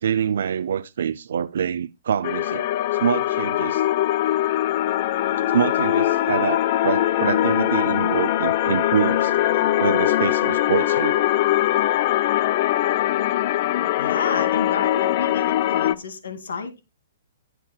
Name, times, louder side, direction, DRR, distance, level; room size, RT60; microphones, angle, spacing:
voice 1, 0.0-3.9 5.5-9.4 9.8-11.2, right 8 dB, 60° right, 0.5 m, -25 dB
sound 1, 2.2-15.9, left 13 dB, 30° left, 0.4 m, -21 dB
voice 2, 14.0-16.8, left 5 dB, 85° left, 2.5 m, -30 dB
17.0 x 7.6 x 2.3 m
hypercardioid pair, 175°, 0 cm